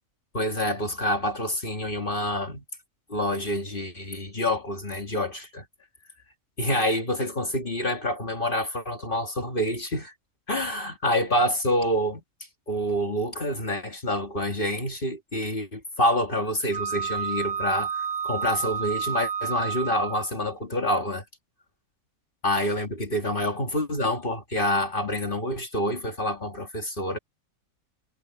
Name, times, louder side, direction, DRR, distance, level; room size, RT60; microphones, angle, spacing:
voice 1, 0.3-2.6 3.1-5.6 6.6-10.1 10.5-12.2 12.7-21.2 22.4-27.2, left 1 dB, 40° left, 2.2 m, -27 dB
Wind instrument woodwind instrument, 16.7-20.3, right 7 dB, 35° right, 1.0 m, -30 dB
omnidirectional pair, 1.5 m